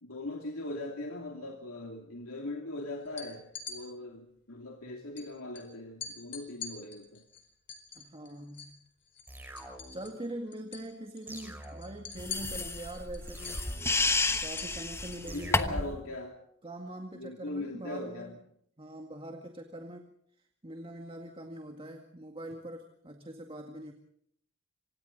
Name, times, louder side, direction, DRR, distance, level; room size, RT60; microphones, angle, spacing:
voice 1, 0.0-7.2 15.3-16.4 17.1-18.4, left 2 dB, 90° left, 1 dB, 2.9 m, -40 dB
sound 1, 3.0-3.8 5.2-5.3 5.5-5.7 6.0-8.8 9.1-10.3 10.5-10.9 11.2-15.3, left 6 dB, 60° left, 4.3 m, -44 dB
voice 2, 8.0-8.8 9.9-13.7 14.4-16.0 16.6-18.4 18.8-20.1 20.6-23.9, right 1 dB, 25° right, 4 dB, 2.0 m, -43 dB
sound 2, 9.3-10.2 11.3-12.2 13.3-14.2 15.3-16.1, right 1 dB, 10° right, 5.2 m, -47 dB
sound 3, 12.2-16.0, left 3 dB, 15° left, 1.1 m, -31 dB
28.0 x 26.0 x 4.1 m, 0.69 s
head